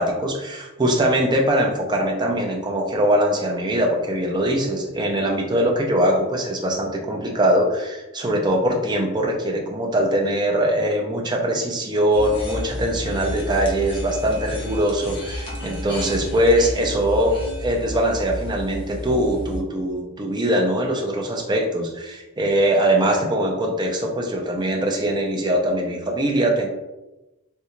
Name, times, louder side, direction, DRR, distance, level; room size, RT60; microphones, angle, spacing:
voice 1, 0.0-17.3 17.6-26.7, right 1 dB, 20° right, 0 dB, 0.4 m, -22 dB
sound 1, 12.1-19.6, left 1 dB, 25° left, 0.7 m, -32 dB
3.6 x 2.2 x 2.9 m, 1.0 s
head